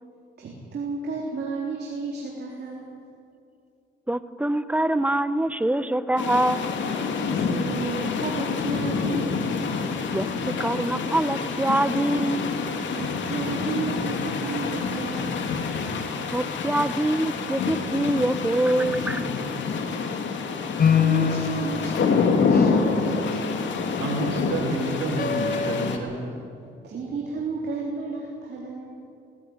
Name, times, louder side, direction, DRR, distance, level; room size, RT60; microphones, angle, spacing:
voice 1, 0.4-3.0 7.1-9.5 12.9-15.5 19.6-20.2 20.6-23.5 26.8-28.9, right 4 dB, 55° right, -2 dB, 3.7 m, -33 dB
voice 2, 4.1-6.7 10.1-12.7 16.3-19.3, right 1 dB, 5° right, 13 dB, 0.9 m, -24 dB
sound 1, 6.2-26.0, left 5 dB, 70° left, 2.5 m, -27 dB
sound 2, 20.8-25.9, left 7 dB, 50° left, 1.4 m, -27 dB
voice 3, 23.1-23.5 24.0-26.3, right 2 dB, 85° right, -1 dB, 5.2 m, -30 dB
18.5 x 15.5 x 9.7 m, 2.5 s
cardioid pair, 90°, 20 cm